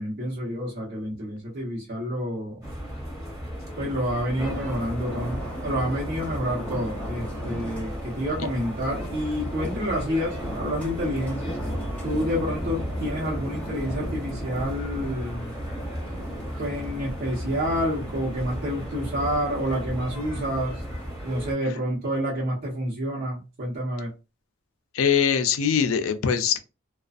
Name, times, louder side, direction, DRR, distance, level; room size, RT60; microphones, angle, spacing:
voice 1, 0.0-2.6 3.8-11.6 12.0-15.5 16.6-20.8 21.2-24.1, equal, 50° right, 0.9 m, -29 dB
sound 1, 2.6-21.5, equal, 15° right, 1.0 m, -36 dB
sound 2, 4.4-21.2, equal, 5° left, 0.6 m, -36 dB
voice 2, 24.9-26.6, left 7 dB, 80° left, 0.4 m, -22 dB
2.4 x 2.2 x 2.4 m
head